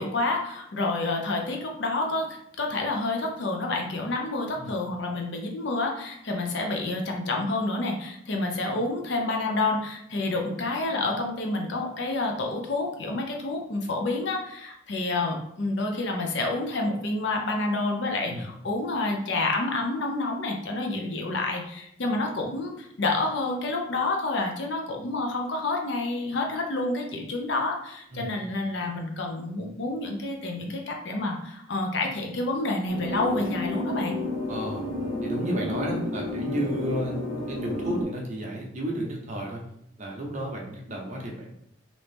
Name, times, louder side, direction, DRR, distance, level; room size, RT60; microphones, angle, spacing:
voice 1, 0.0-34.2, left 2 dB, 55° left, 2 dB, 0.5 m, -29 dB
sound 1, 32.9-38.0, left 1 dB, 75° left, 1.3 m, -31 dB
voice 2, 34.5-34.8 35.2-37.2 37.5-39.6 40.0-41.6, right 1 dB, 35° right, -1 dB, 0.6 m, -32 dB
3.0 x 2.7 x 3.4 m, 0.75 s
head